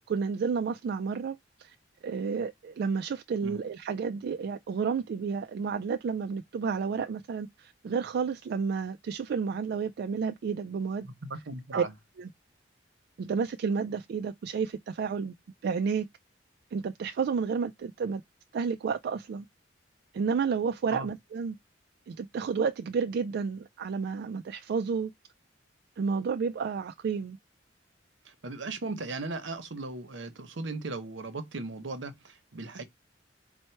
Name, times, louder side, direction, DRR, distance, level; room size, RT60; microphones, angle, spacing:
voice 1, 0.1-1.7 2.0-11.1 11.7-11.8 12.2-12.3 13.2-15.3 15.6-16.1 16.7-18.2 18.5-19.5 20.1-21.6 22.1-25.1 26.0-27.4, right 5 dB, 60° right, 0.3 m, -31 dB
voice 2, 11.0-11.9 20.9-21.1 28.2-32.8, right 3 dB, 80° right, 0.9 m, -37 dB
4.3 x 2.1 x 4.4 m
head